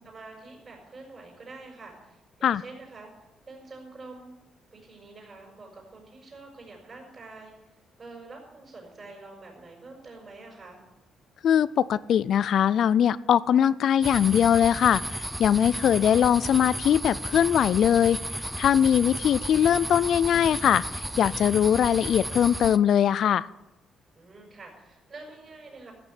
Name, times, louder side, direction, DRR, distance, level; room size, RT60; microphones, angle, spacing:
voice 1, 0.0-3.1 3.5-4.3 4.7-10.8 24.1-25.9, right 3 dB, 35° right, -1 dB, 5.9 m, -46 dB
voice 2, 11.4-18.2 18.6-20.8 21.2-23.5, left 9 dB, 65° left, 18 dB, 0.4 m, -21 dB
sound 1, 14.0-22.8, right 1 dB, 5° right, 0.7 m, -34 dB
14.0 x 7.0 x 8.0 m, 1.0 s
cardioid pair, 90°, 0 cm